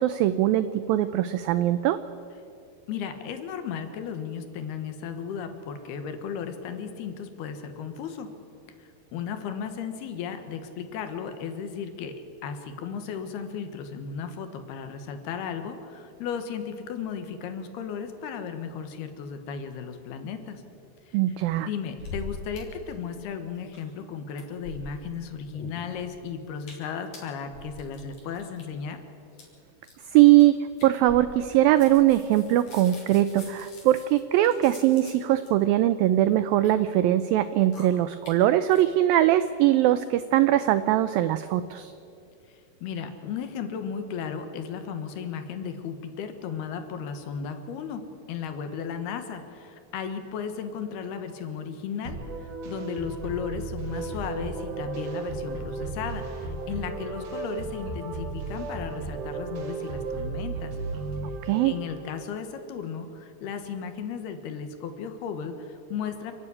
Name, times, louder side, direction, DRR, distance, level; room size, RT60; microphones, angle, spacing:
voice 1, 0.0-2.0 21.1-21.7 30.1-30.6 30.8-41.9 61.4-61.7, right 14 dB, 85° right, 13 dB, 2.0 m, -21 dB
voice 2, 2.9-8.3 8.8-20.6 21.1-21.2 21.6-29.0 42.5-60.8 61.6-66.3, left 7 dB, 75° left, 8 dB, 3.2 m, -35 dB
sound 1, 21.8-22.6 22.9-23.0 23.2-24.0 24.3-25.1 25.5-26.2 26.6-26.9 27.1-28.6 29.3-29.4 29.8-30.0 30.4-30.5 30.8-31.5 31.8-35.5 36.3-36.7 37.3-37.4 37.7-37.8 38.3-38.4 38.7-38.8, left 3 dB, 45° left, 5.1 m, -43 dB
sound 2, 52.1-62.1, right 3 dB, 55° right, 3.0 m, -34 dB
29.0 x 10.0 x 9.8 m, 2.5 s
omnidirectional pair, 4.8 m